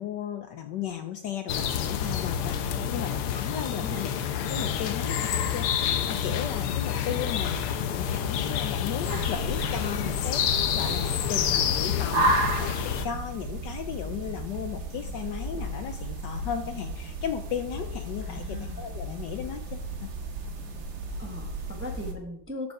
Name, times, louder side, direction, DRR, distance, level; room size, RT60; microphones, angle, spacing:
voice 1, 0.0-2.6 2.9-20.1, left 9 dB, 70° left, 7 dB, 1.1 m, -36 dB
sound 1, 1.5-13.1, left 8 dB, 90° left, 1.7 m, -28 dB
voice 2, 2.7-3.1 3.8-4.0 18.2-18.8 21.2-22.7, left 1 dB, 10° right, 2 dB, 0.6 m, -39 dB
sound 2, 9.1-22.1, right 1 dB, 55° right, 1.8 m, -33 dB
13.0 x 5.3 x 4.7 m, 0.78 s
omnidirectional pair, 2.4 m